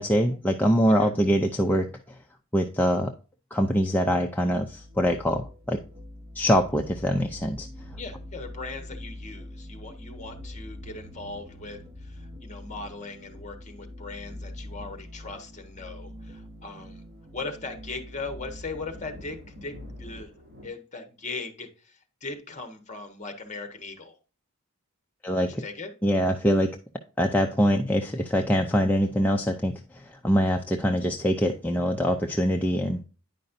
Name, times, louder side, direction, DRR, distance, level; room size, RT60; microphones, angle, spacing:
voice 1, 0.0-1.9 2.5-3.1 3.5-5.8 6.3-7.7 25.2-25.6 26.0-26.7 27.2-33.0, equal, 10° left, 2 dB, 0.4 m, -24 dB
sound 1, 4.5-20.2, left 1 dB, 30° right, 0.9 m, -43 dB
voice 2, 8.0-17.0 17.3-20.3 20.6-24.2 25.6-25.9, left 3 dB, 30° left, 7 dB, 1.2 m, -39 dB
sound 2, 16.2-16.3 17.3-20.7, left 1 dB, 45° right, 2.7 m, -49 dB
9.7 x 5.2 x 2.6 m, 0.35 s
head